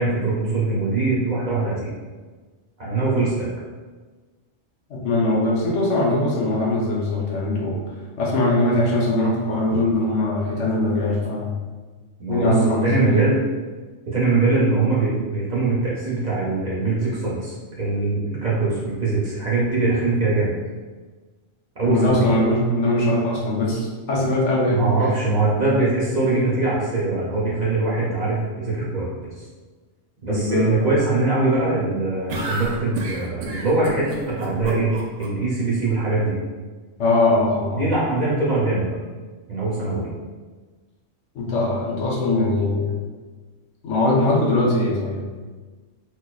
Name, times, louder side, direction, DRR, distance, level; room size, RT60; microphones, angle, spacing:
voice 1, 0.0-1.9 2.8-3.5 12.2-12.5 12.8-13.4 14.1-20.5 21.8-22.2 24.7-29.4 30.2-34.9 35.2-36.3 37.7-39.0 39.5-40.1, right 3 dB, 45° right, -7 dB, 0.7 m, -22 dB
voice 2, 4.9-7.8 8.2-11.5 12.3-13.1 21.8-24.9 30.3-30.9 37.0-37.9 41.3-43.0 43.8-45.2, left 1 dB, 75° left, -3 dB, 1.0 m, -21 dB
sound 1, 32.3-35.3, right 2 dB, 75° right, 0.9 m, -30 dB
4.4 x 2.2 x 2.3 m, 1.3 s
omnidirectional pair, 1.3 m